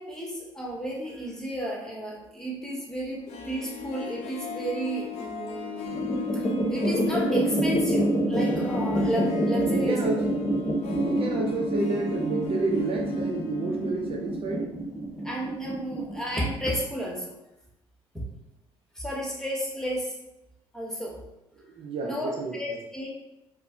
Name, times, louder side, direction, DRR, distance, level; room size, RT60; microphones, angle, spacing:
voice 1, 0.0-5.9 6.3-10.0 15.2-17.4 18.1-18.2 18.9-20.1 20.7-21.2 22.0-23.1, equal, 5° left, -3 dB, 1.1 m, -32 dB
Harp, 3.1-14.1 14.4-14.5, left 9 dB, 65° left, 0.6 m, -39 dB
sound 1, 5.9-16.6, right 1 dB, 25° left, 1.0 m, -27 dB
voice 2, 9.7-10.3 10.9-14.8 21.6-22.8, right 3 dB, 50° right, 0 dB, 0.5 m, -30 dB
4.4 x 2.1 x 2.6 m, 0.90 s
hypercardioid pair, 65°, 12 cm